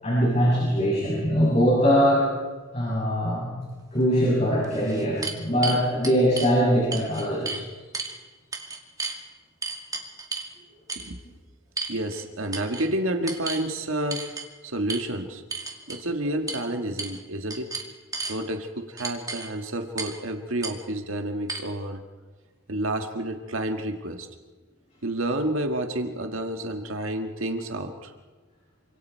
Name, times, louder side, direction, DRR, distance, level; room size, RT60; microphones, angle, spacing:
voice 1, 0.0-2.3 2.7-3.5 3.9-7.6, equal, 35° left, -5 dB, 7.2 m, -22 dB
sound 1, 4.0-4.1 4.6-6.5 6.9-7.6 7.9-8.2 8.5-9.2 9.6-10.5 10.9-11.1 11.8-12.2 12.5-12.9 13.3-13.7 14.1-14.5 14.9-15.0 15.5-16.0 16.5-16.6 17.0-17.2 17.5-18.4 19.0-19.5 20.0-20.2 20.6-20.7 21.5-21.6, right 3 dB, 20° right, 2.4 m, -33 dB
voice 2, 11.9-14.4 14.6-15.4 15.9-17.7 18.3-22.0 22.7-24.3 25.0-28.1, right 1 dB, 85° right, 4 dB, 1.8 m, -29 dB
28.5 x 26.0 x 4.7 m, 1.4 s
head